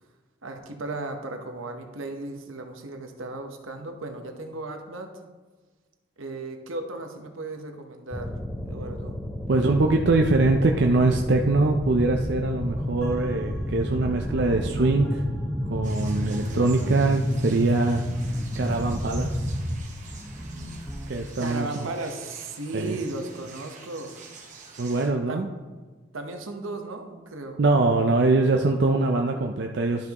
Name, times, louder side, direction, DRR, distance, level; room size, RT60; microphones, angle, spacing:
voice 1, 0.4-5.1 6.2-8.4 8.6-9.2 21.4-24.2 25.3-25.4 26.1-27.6, right 2 dB, 80° right, 4 dB, 1.0 m, -35 dB
sound 1, 8.1-19.8, equal, ahead, 0.5 m, -30 dB
voice 2, 9.5-15.2 15.7-18.0 18.6-19.5 21.1-21.7 22.7-23.0 24.8-25.5 27.6-30.1, right 3 dB, 55° right, 3 dB, 0.5 m, -23 dB
sound 2, 13.0-21.1, equal, 15° left, 1.8 m, -39 dB
sound 3, 15.8-25.1, right 5 dB, 35° right, 1.1 m, -47 dB
12.0 x 5.9 x 3.0 m, 1.3 s
head